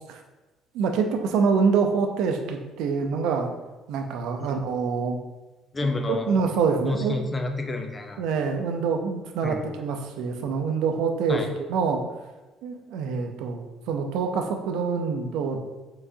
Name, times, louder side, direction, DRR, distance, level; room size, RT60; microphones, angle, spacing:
voice 1, 0.7-3.5 3.9-5.2 6.1-7.2 8.2-11.4 11.7-12.0 12.6-15.6, right 5 dB, 85° right, 4 dB, 0.5 m, -25 dB
voice 2, 5.7-6.3 6.9-8.2 9.4-9.6 11.3-11.5, left 2 dB, 20° left, 4 dB, 0.5 m, -29 dB
4.7 x 3.8 x 2.7 m, 1.1 s
cardioid pair, 115°, 0 cm